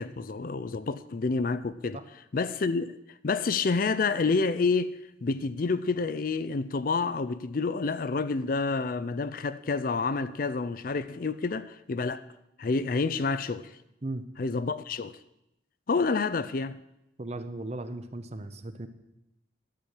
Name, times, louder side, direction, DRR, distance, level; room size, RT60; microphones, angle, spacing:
voice 1, 0.0-2.0 2.3-3.0 3.2-5.0 5.2-12.2 12.6-13.7 14.4-15.2 15.9-16.8, left 4 dB, 45° left, 0.4 m, -28 dB
voice 2, 17.2-18.9, right 2 dB, 35° right, 0.8 m, -36 dB
11.5 x 6.2 x 8.3 m
head